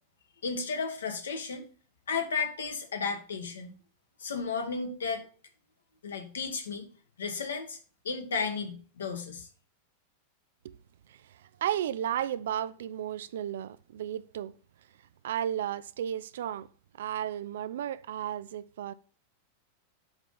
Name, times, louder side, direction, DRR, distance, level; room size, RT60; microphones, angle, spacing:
voice 1, 0.4-1.6 2.1-3.7 4.2-5.2 6.0-6.9 7.2-7.8 8.0-9.5, left 5 dB, 70° left, 1.4 m, -33 dB
voice 2, 11.1-14.5 15.2-16.7 17.0-18.9, right 10 dB, 60° right, 0.4 m, -34 dB
7.9 x 3.7 x 5.4 m
figure-of-eight pair, 90°, 0 cm